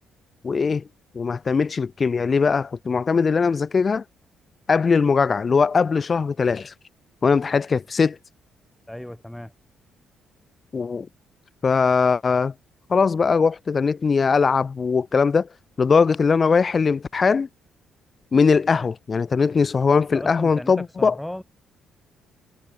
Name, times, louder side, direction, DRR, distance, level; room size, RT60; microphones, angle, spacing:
voice 1, 0.4-0.8 1.1-4.0 4.7-6.7 7.2-8.2 10.7-11.1 11.6-12.5 12.9-15.5 15.8-17.5 18.3-21.1, left 5 dB, 35° left, 0.4 m, -20 dB
voice 2, 8.9-9.5 20.1-21.4, left 1 dB, 5° left, 2.2 m, -35 dB
cardioid pair, 90°, 0 cm